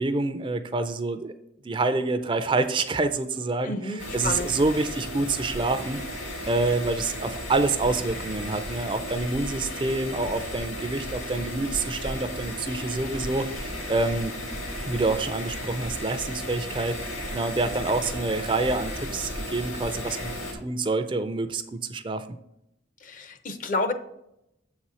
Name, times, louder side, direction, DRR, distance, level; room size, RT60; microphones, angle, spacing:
voice 1, 0.0-1.3 1.6-6.0 6.5-14.3 14.8-22.3, right 3 dB, 25° right, 10 dB, 0.4 m, -27 dB
voice 2, 3.6-4.5 23.0-23.9, left 2 dB, 40° left, 9 dB, 0.6 m, -30 dB
noisy server computer, 4.0-20.5, left 1 dB, 90° left, 2.4 m, -34 dB
7.3 x 4.1 x 6.1 m, 0.82 s
head